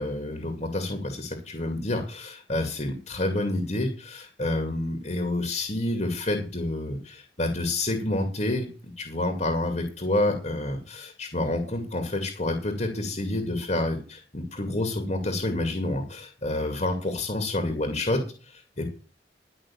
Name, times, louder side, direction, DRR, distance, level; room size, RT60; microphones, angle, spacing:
voice 1, 0.0-8.7 9.0-18.9, left 1 dB, 40° left, 5 dB, 2.4 m, -28 dB
11.5 x 6.1 x 8.6 m, 0.35 s
head